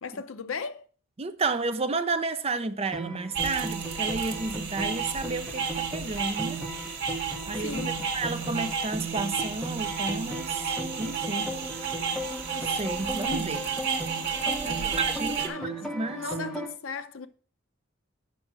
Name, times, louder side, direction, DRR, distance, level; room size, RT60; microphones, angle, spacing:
voice 1, 0.0-0.9 7.5-8.0 14.6-15.0 15.5-15.8 16.1-17.3, left 5 dB, 80° left, 0.7 m, -36 dB
voice 2, 1.2-6.6 7.1-11.5 12.5-13.7 14.9-16.2, right 3 dB, 30° right, 0.6 m, -32 dB
sound 1, 2.9-16.7, right 1 dB, ahead, 1.6 m, -36 dB
sound 2, 3.3-15.5, right 6 dB, 55° right, 1.7 m, -32 dB
8.2 x 5.9 x 6.0 m
head